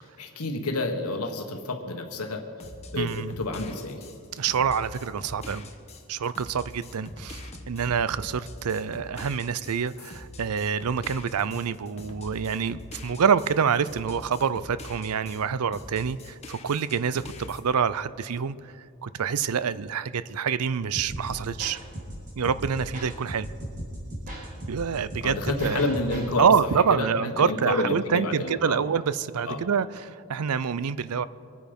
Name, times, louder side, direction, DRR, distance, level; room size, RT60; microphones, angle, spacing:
voice 1, 0.2-2.4 2.9-4.0 25.2-26.5 27.0-28.8 29.5-29.6, left 2 dB, 90° left, 4 dB, 1.5 m, -29 dB
sound 1, 2.6-15.4 15.7-17.6, left 2 dB, 30° left, 1.2 m, -44 dB
voice 2, 2.9-3.4 4.3-5.7 6.1-18.7 19.0-21.8 22.4-23.5 24.4-26.0 26.4-31.3, right 6 dB, 90° right, 16 dB, 0.5 m, -26 dB
sound 2, 20.9-26.3, right 1 dB, 35° right, 4.6 m, -37 dB
25.0 x 9.3 x 5.3 m, 2.4 s
head